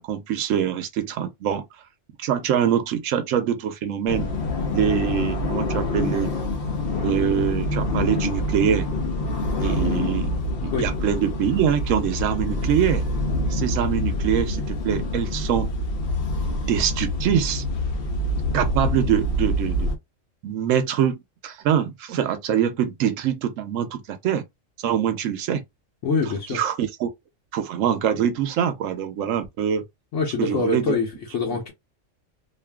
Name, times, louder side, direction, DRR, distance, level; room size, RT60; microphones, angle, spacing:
voice 1, 0.0-1.6 2.2-4.3 4.7-6.3 7.0-8.9 9.6-10.3 10.6-13.0 13.5-15.7 16.7-17.6 18.5-19.9 20.4-24.4 24.8-25.6 26.5-27.1 27.5-29.8 30.4-31.0, right 9 dB, 90° right, 1.0 m, -24 dB
sound 1, 4.1-20.0, left 1 dB, 55° left, 0.8 m, -26 dB
voice 2, 26.0-26.6 30.1-31.7, left 4 dB, 75° left, 1.1 m, -25 dB
2.6 x 2.4 x 2.2 m
omnidirectional pair, 1.3 m